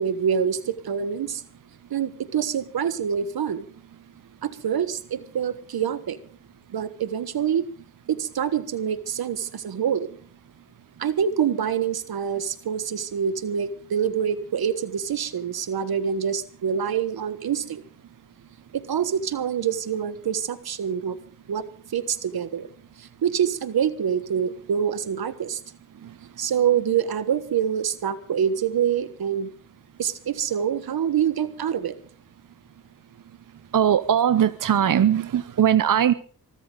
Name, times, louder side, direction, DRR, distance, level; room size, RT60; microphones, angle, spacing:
voice 1, 0.0-1.4 1.9-3.6 4.4-6.2 6.7-7.7 8.1-10.1 11.0-17.8 18.7-21.2 21.5-21.6 21.9-22.7 23.2-25.6 26.4-29.5 30.0-31.9, right 8 dB, 85° right, 12 dB, 1.4 m, -26 dB
voice 2, 33.7-36.1, right 9 dB, 60° right, 13 dB, 0.8 m, -20 dB
24.0 x 13.5 x 3.9 m, 0.43 s
cardioid pair, 65°, 36 cm